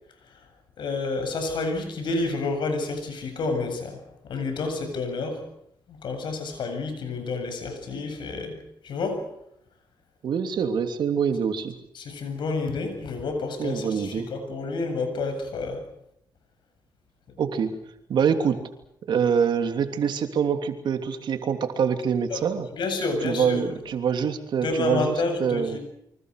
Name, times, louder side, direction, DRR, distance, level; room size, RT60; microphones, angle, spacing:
voice 1, 0.8-5.4 5.9-9.3 11.9-15.8 22.3-22.4 22.7-23.6 24.6-25.8, left 3 dB, 70° left, 6 dB, 7.9 m, -29 dB
voice 2, 10.2-11.8 13.6-14.3 17.4-17.7 18.1-18.6 19.1-22.7 23.2-25.8, right 7 dB, 70° right, 7 dB, 3.1 m, -25 dB
28.5 x 25.0 x 6.7 m, 0.77 s
cardioid pair, 90°, 8 cm